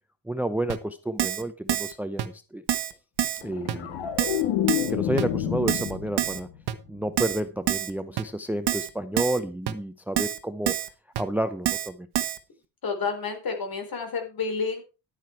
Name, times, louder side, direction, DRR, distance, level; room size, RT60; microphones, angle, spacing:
voice 1, 0.3-2.6 3.4-4.1 4.9-6.5 6.9-10.8 11.2-12.1, right 1 dB, 5° right, 12 dB, 0.7 m, -30 dB
Keyboard (musical), 0.7-0.8 1.2-1.4 1.7-1.9 2.2-2.3 2.7-2.9 3.2-3.4 3.7-3.8 4.2-4.4 4.7-4.9 5.2-5.3 5.7-5.9 6.2-6.4 6.7-6.8 7.2-7.4 7.7-7.9 8.2-8.3 8.7-8.9 9.2-9.4 9.7-9.8 10.2-10.4 10.7-10.9 11.2-11.3 11.7-11.9 12.1-12.4, right 11 dB, 60° right, 1.3 m, -26 dB
sound 1, 3.4-6.6 6.9-7.3, left 11 dB, 85° left, 1.9 m, -28 dB
voice 2, 12.8-14.8, left 5 dB, 50° left, 6 dB, 4.4 m, -30 dB
11.5 x 9.1 x 4.6 m, 0.31 s
cardioid pair, 95°, 45 cm